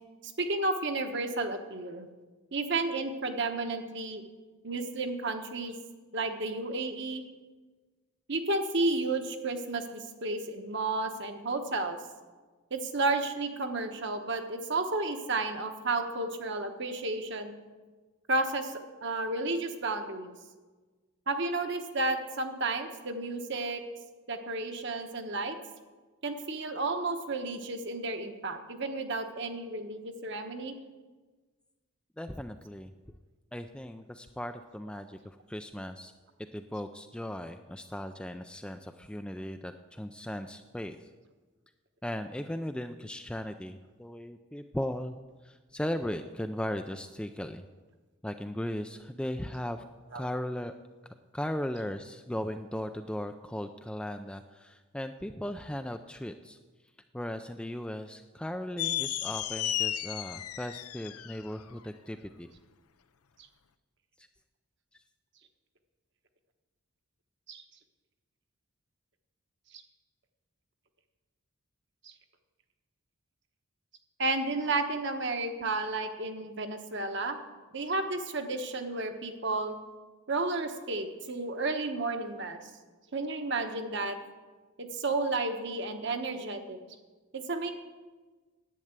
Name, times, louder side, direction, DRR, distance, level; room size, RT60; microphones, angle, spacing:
voice 1, 0.2-2.1 2.5-4.2 4.6-5.7 6.1-7.2 8.3-12.0 12.7-17.5 18.3-20.3 21.3-23.8 24.3-25.6 26.2-30.7 50.1-50.2 67.5-67.6 69.7-69.8 72.0-72.1 74.2-77.4 77.7-79.8 80.3-82.6 83.1-84.2 84.8-86.8 87.3-87.7, right 2 dB, 50° right, 6 dB, 1.1 m, -32 dB
voice 2, 32.2-32.9 33.5-36.1 36.5-41.1 42.0-45.2 45.4-47.7 48.2-49.8 50.1-50.7 51.0-56.6 57.1-62.5 64.2-64.3 64.9-65.0, left 1 dB, 5° left, 7 dB, 0.3 m, -37 dB
sound 1, 58.8-61.5, left 12 dB, 85° left, 0.6 m, -33 dB
10.5 x 8.7 x 8.0 m, 1.3 s
head